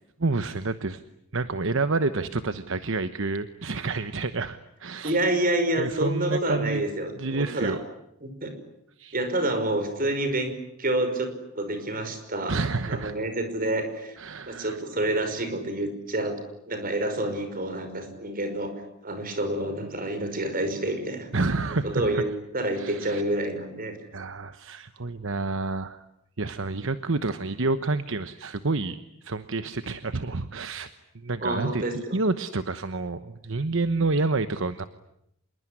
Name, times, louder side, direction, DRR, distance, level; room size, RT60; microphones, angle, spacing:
voice 1, 0.2-1.0 1.3-5.2 5.8-6.8 7.2-7.8 9.0-9.2 12.5-13.2 14.2-14.8 21.3-22.2 22.8-23.2 24.1-26.0 26.4-34.9, right 3 dB, 60° right, 11 dB, 1.1 m, -29 dB
voice 2, 5.0-7.8 8.2-8.5 9.1-10.5 10.8-12.6 12.9-14.2 14.5-16.4 16.7-18.7 19.0-21.3 21.7-22.3 22.5-23.9 31.4-32.2, right 1 dB, 40° right, 8 dB, 5.5 m, -28 dB
26.5 x 22.0 x 10.0 m, 0.78 s
head